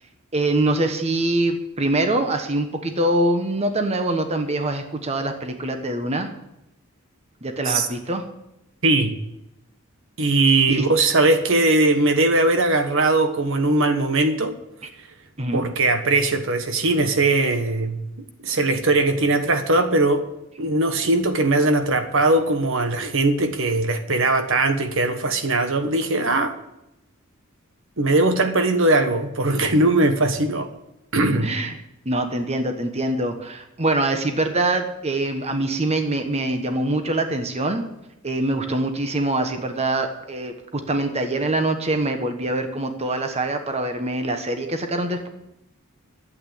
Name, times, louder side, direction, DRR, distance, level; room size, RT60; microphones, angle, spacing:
voice 1, 0.3-6.3 7.4-8.2 10.7-10.9 15.4-15.7 31.4-31.8 32.0-37.8 38.2-45.3, right 2 dB, 30° right, 1.2 m, -24 dB
voice 2, 8.8-9.1 10.2-14.6 15.5-18.0 18.4-20.2 20.6-26.5 28.0-30.7 31.1-31.5, right 2 dB, 60° right, 1.3 m, -20 dB
12.5 x 8.5 x 8.6 m
head